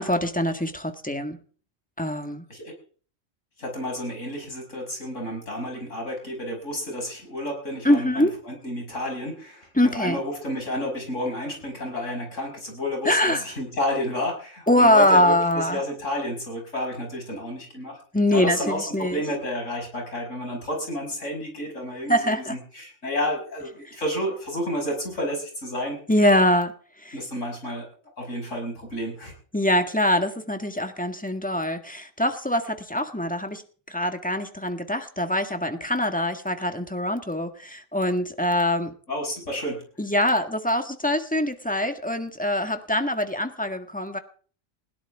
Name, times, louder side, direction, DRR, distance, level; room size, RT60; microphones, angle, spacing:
voice 1, 0.0-1.4 2.0-2.4 7.8-8.3 9.7-10.2 13.0-13.5 14.7-15.8 18.1-19.2 22.1-22.6 23.8-24.0 26.1-26.7 27.0-27.2 29.5-33.6 33.9-38.9 40.0-44.2, left 1 dB, 5° left, 6 dB, 1.6 m, -23 dB
voice 2, 3.6-9.7 10.0-13.2 13.4-18.0 18.3-26.0 27.1-27.8 28.2-29.3 39.1-39.8, equal, 65° left, 1 dB, 6.3 m, -30 dB
20.5 x 17.0 x 3.6 m, 0.42 s
omnidirectional pair, 1.4 m